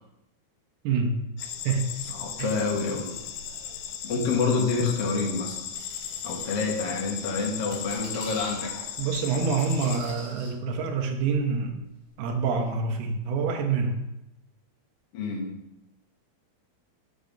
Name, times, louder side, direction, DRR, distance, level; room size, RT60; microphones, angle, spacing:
sound 1, 1.4-10.0, left 9 dB, 75° left, 2.5 m, -37 dB
voice 1, 2.1-3.1 4.0-5.6 6.2-8.7 15.1-15.5, left 4 dB, 55° left, 0 dB, 1.7 m, -27 dB
sound 2, 5.8-7.0 7.6-8.6 9.6-10.6 11.4-12.1 12.7-12.8, right 1 dB, 45° right, 2.9 m, -46 dB
voice 2, 9.0-11.8 12.2-14.0, right 5 dB, 75° right, 3 dB, 3.0 m, -26 dB
7.1 x 6.8 x 5.1 m, 0.88 s
omnidirectional pair, 4.7 m